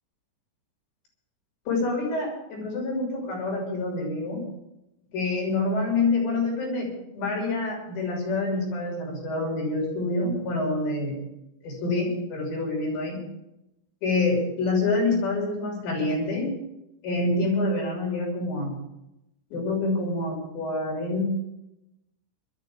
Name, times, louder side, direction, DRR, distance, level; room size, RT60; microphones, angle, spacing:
voice 1, 1.7-4.4 5.1-11.2 11.6-13.2 14.0-16.5 17.0-18.8 19.5-21.3, left 2 dB, 70° left, -3 dB, 8.9 m, -27 dB
23.0 x 13.5 x 3.9 m, 0.87 s
omnidirectional pair, 5.3 m